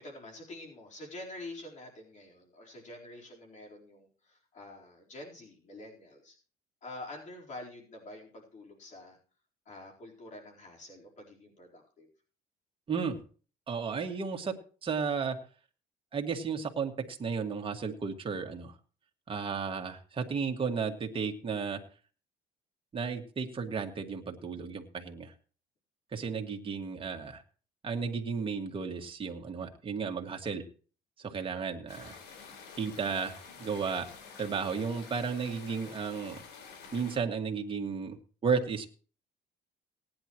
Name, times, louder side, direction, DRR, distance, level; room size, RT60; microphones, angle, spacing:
voice 1, 0.0-6.4 6.8-9.2 9.7-12.1 31.4-31.5, left 1 dB, 45° left, -1 dB, 4.2 m, -47 dB
voice 2, 13.7-15.4 16.1-18.7 19.3-21.8 22.9-25.3 26.1-27.4 27.8-30.6 31.2-32.2 32.8-34.1 34.4-36.4 36.9-38.9, right 5 dB, 30° right, 4 dB, 2.1 m, -33 dB
sound 1, 31.9-37.2, left 5 dB, 90° left, 4.2 m, -49 dB
18.5 x 10.5 x 3.1 m, 0.39 s
cardioid pair, 110°, 17 cm